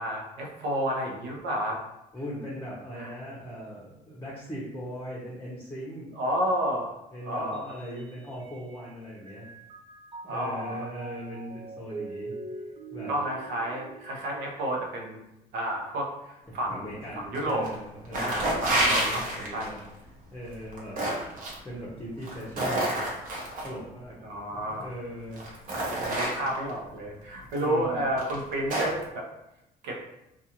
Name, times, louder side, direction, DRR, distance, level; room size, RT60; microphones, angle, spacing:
voice 1, 0.0-1.8 3.0-3.1 6.2-6.9 7.3-7.7 10.2-10.8 13.1-15.2 15.5-16.9 17.1-17.7 18.1-19.8 24.2-24.9 25.7-29.3 29.8-30.0, right 1 dB, 85° right, 0 dB, 0.7 m, -31 dB
voice 2, 2.1-6.2 7.1-9.5 10.2-12.3 12.9-13.1 16.5-19.8 20.3-21.0 21.4-23.1 23.6-24.2 24.5-25.4 27.6-28.0, equal, 15° left, -7 dB, 0.6 m, -39 dB
Mallet percussion, 7.5-8.9 9.3-14.7, right 3 dB, 30° right, 0.4 m, -42 dB
sound 1, 17.3-17.7 18.1-19.8 20.5-21.5 22.2-23.7 24.7-24.8 25.3-26.7 27.5-27.6 28.2-29.0, right 1 dB, 55° right, 0.8 m, -29 dB
2.4 x 2.3 x 2.8 m, 0.90 s
cardioid pair, 110°, 17 cm